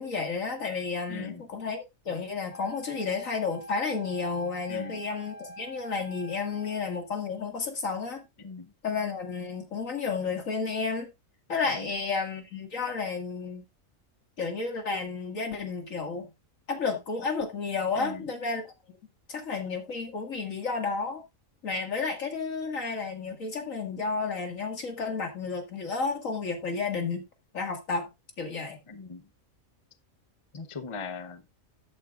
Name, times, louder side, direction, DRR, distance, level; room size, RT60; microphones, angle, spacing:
voice 1, 0.0-8.2 8.8-11.1 11.5-13.6 14.4-16.3 16.7-18.7 19.3-21.2 21.6-27.2 27.5-28.1 28.4-28.8, left 4 dB, 70° left, 2.4 m, -32 dB
voice 2, 1.1-1.4 4.7-5.0 8.4-8.7 11.7-11.9 18.0-18.2 28.9-29.3 30.5-31.4, left 4 dB, 25° left, 0.8 m, -39 dB
Wind instrument woodwind instrument, 2.5-6.9, right 1 dB, 45° left, 2.3 m, -45 dB
12.5 x 8.6 x 2.4 m
omnidirectional pair, 1.4 m